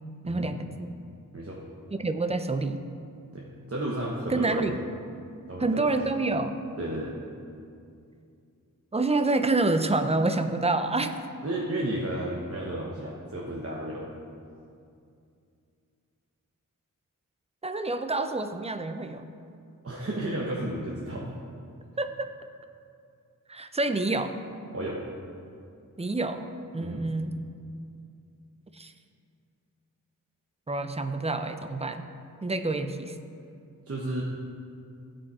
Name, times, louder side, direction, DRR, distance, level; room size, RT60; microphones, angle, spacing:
voice 1, 0.3-0.9 1.9-2.8 4.3-4.8 5.6-6.6 8.9-11.1 17.6-19.3 22.0-22.3 23.5-24.3 26.0-27.4 28.7-28.9 30.7-32.1 32.4-33.1, right 2 dB, 20° right, 8 dB, 0.6 m, -27 dB
voice 2, 3.3-4.7 5.5-5.9 6.8-7.1 11.4-14.1 19.8-21.3 24.7-25.0 26.8-27.1 33.9-34.2, right 1 dB, 40° right, -4 dB, 1.2 m, -33 dB
16.0 x 5.5 x 4.2 m, 2.4 s
wide cardioid pair, 80°, 34 cm